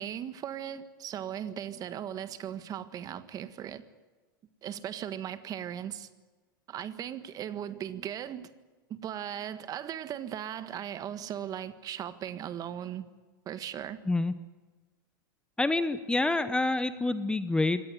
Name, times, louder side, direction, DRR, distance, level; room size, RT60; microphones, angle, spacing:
voice 1, 0.0-3.8 4.6-6.1 6.7-8.5 8.9-13.0 13.4-14.0, right 10 dB, 30° right, 12 dB, 1.5 m, -38 dB
voice 2, 15.6-17.8, left 2 dB, 10° left, 13 dB, 0.9 m, -27 dB
24.0 x 18.0 x 9.5 m, 1.3 s
hypercardioid pair, 110°, 11 cm